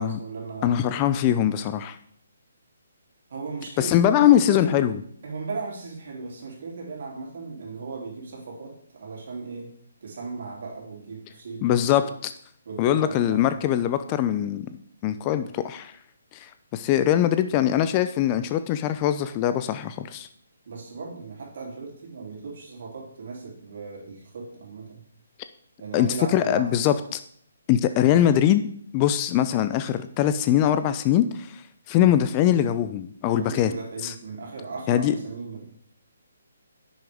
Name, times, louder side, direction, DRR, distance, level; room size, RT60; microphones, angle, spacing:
voice 1, 0.0-0.8 3.3-4.8 5.2-9.7 10.0-12.1 12.6-13.5 20.6-25.0 25.8-26.7 33.2-35.6, right 4 dB, 60° right, -2 dB, 3.1 m, -37 dB
voice 2, 0.6-2.0 3.8-5.0 11.6-12.3 12.8-14.7 15.0-15.9 16.3-20.3 25.9-27.2 27.7-31.6 31.9-33.7 34.0-34.1 34.9-35.1, left 11 dB, 25° left, 11 dB, 0.5 m, -22 dB
10.0 x 6.3 x 3.4 m, 0.62 s
figure-of-eight pair, 140°, 0 cm